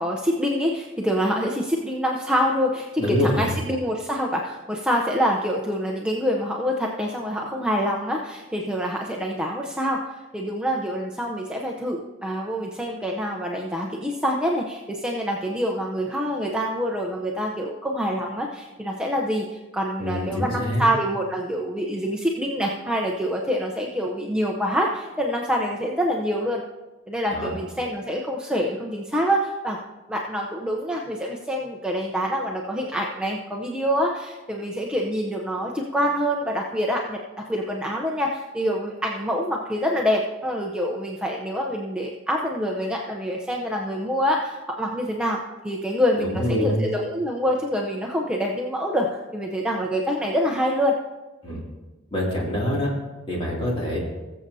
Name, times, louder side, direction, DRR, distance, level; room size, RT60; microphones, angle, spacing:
voice 1, 0.0-26.6 27.1-29.8 30.1-45.4 45.6-49.1 49.3-51.0, equal, 5° right, -1 dB, 0.6 m, -26 dB
voice 2, 3.0-3.5 20.0-20.9 27.3-27.5 46.2-46.9 51.4-51.6 52.1-52.9 53.3-54.0, left 1 dB, 25° left, -4 dB, 2.5 m, -25 dB
20.0 x 7.4 x 2.7 m, 1.2 s
head